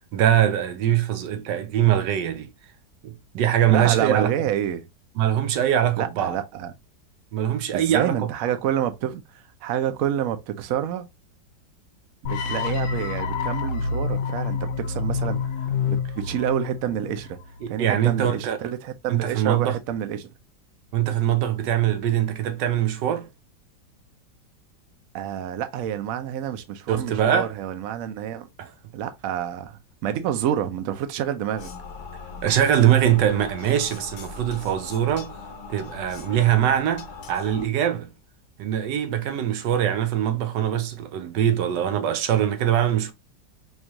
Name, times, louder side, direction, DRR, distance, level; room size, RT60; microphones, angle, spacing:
voice 1, 0.1-2.5 3.0-4.3 5.2-6.4 7.3-8.3 17.6-18.6 19.1-19.8 20.9-23.3 26.9-27.5 28.6-28.7 32.4-35.3 35.7-38.1 38.6-43.1, right 10 dB, 85° right, 1.3 m, -22 dB
voice 2, 3.7-4.9 6.0-6.7 7.7-11.1 12.2-15.5 15.9-17.4 17.7-20.3 25.1-28.5 28.9-31.7, right 10 dB, 65° right, 0.8 m, -28 dB
sound 1, 12.2-17.3, left 5 dB, 75° left, 1.2 m, -27 dB
sound 2, 31.5-37.7, left 4 dB, 60° left, 0.8 m, -40 dB
4.4 x 2.4 x 2.8 m
omnidirectional pair, 1.9 m